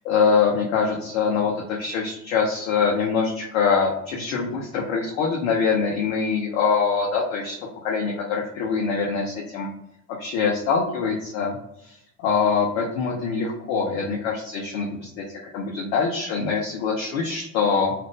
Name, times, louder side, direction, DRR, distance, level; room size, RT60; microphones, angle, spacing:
voice 1, 0.0-7.6 7.8-9.7 10.2-11.6 12.2-15.2 15.5-17.9, left 5 dB, 50° left, -2 dB, 0.7 m, -24 dB
2.8 x 2.0 x 3.4 m, 0.79 s
figure-of-eight pair, 70°, 50 cm